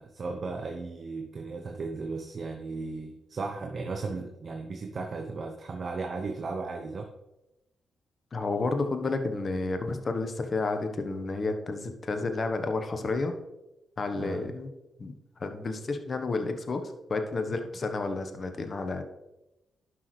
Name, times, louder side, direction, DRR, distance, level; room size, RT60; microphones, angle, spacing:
voice 1, 0.0-7.1 14.2-14.5, right 3 dB, 50° right, 4 dB, 0.9 m, -36 dB
voice 2, 8.3-13.3 14.0-14.7 15.0-15.1 15.4-19.0, left 3 dB, 45° left, 7 dB, 1.2 m, -31 dB
11.0 x 6.2 x 3.3 m, 0.94 s
hypercardioid pair, 40°, 0 cm